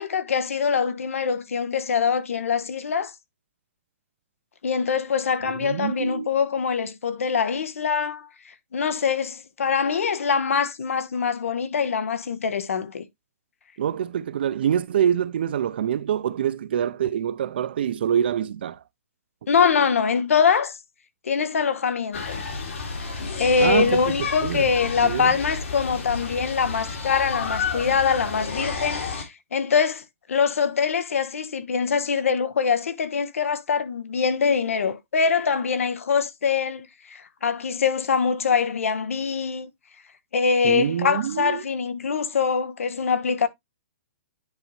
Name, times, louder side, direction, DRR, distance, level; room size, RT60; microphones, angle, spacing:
voice 1, 0.0-3.1 4.6-13.1 19.5-20.8 21.2-22.4 23.4-39.7 40.3-43.5, left 6 dB, 85° left, 1.2 m, -24 dB
voice 2, 5.6-6.3 13.8-18.8 23.6-24.7 25.0-25.3 40.6-41.6, right 9 dB, 50° right, 0.5 m, -25 dB
sound 1, 22.1-29.2, left 4 dB, 70° left, 2.6 m, -31 dB
10.0 x 4.0 x 3.1 m
hypercardioid pair, 175°, 7 cm